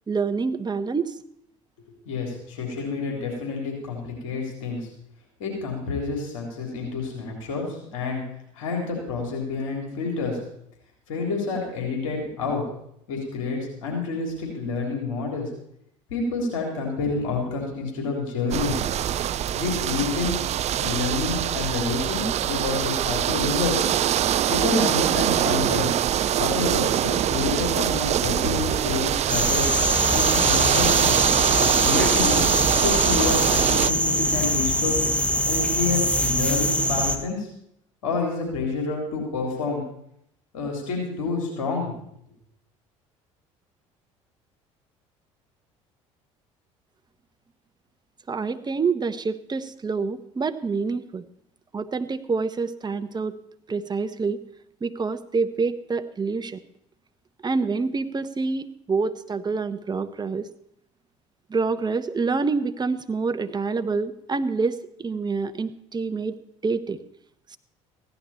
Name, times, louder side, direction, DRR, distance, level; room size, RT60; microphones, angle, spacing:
voice 1, 0.1-1.1 48.3-51.2 51.7-53.3 53.7-54.4 54.8-56.6 57.4-60.5 61.5-66.4 66.6-67.0, right 4 dB, 25° right, 11 dB, 1.0 m, -27 dB
voice 2, 2.1-4.9 5.4-8.2 8.6-10.4 11.1-12.6 13.1-15.5 16.1-18.8 19.6-20.4 20.8-23.8 24.5-25.9 26.3-29.7 30.1-31.2 31.8-32.4 32.7-35.0 35.4-37.5 38.0-39.8 40.5-41.9, left 4 dB, 80° left, 0 dB, 3.7 m, -28 dB
sound 1, 18.5-33.9, right 11 dB, 40° right, 0.4 m, -23 dB
sound 2, 29.3-37.2, equal, 5° left, 1.6 m, -23 dB
15.5 x 11.0 x 4.4 m, 0.73 s
hypercardioid pair, 60°, 17 cm